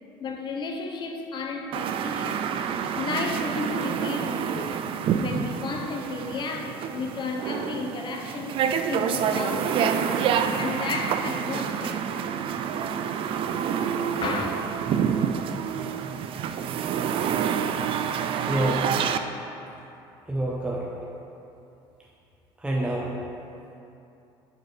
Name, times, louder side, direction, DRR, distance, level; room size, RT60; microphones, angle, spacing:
voice 1, 0.2-2.5 3.0-4.8 5.2-8.6 8.9-10.2 10.6-12.1 14.1-14.5, left 4 dB, 45° left, 3 dB, 0.9 m, -33 dB
sound 1, 1.7-19.2, right 7 dB, 50° right, 0.4 m, -28 dB
voice 2, 18.4-18.9 20.3-20.9 22.6-23.2, right 1 dB, 10° right, -4 dB, 0.8 m, -27 dB
10.5 x 4.6 x 3.2 m, 2.8 s
supercardioid pair, 95°, 12 cm